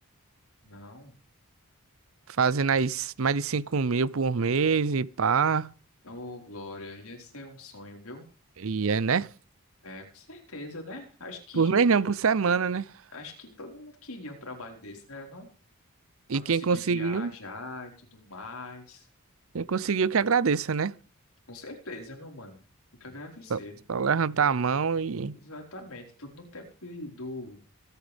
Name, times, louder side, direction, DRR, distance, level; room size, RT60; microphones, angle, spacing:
voice 1, 0.6-1.1 6.0-8.2 9.8-11.8 13.1-15.5 16.5-19.1 21.5-22.6 23.0-23.8 25.3-27.6, left 2 dB, 75° left, 4.7 m, -42 dB
voice 2, 2.4-5.7 8.6-9.3 11.6-12.9 16.3-17.3 19.5-20.9 23.5-23.6 23.9-25.4, right 5 dB, 65° right, 0.6 m, -25 dB
25.5 x 9.3 x 3.5 m
head